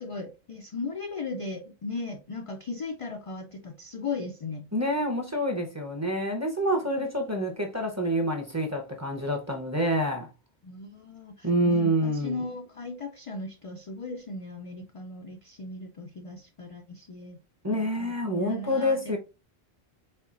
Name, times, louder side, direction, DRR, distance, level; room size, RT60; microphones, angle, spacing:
voice 1, 0.0-4.7 7.0-7.1 10.6-17.4 17.7-19.2, left 3 dB, 55° left, 0.3 m, -37 dB
voice 2, 4.7-10.3 11.4-12.4 17.6-19.2, equal, 20° right, 0.7 m, -27 dB
4.3 x 3.7 x 2.4 m
omnidirectional pair, 1.1 m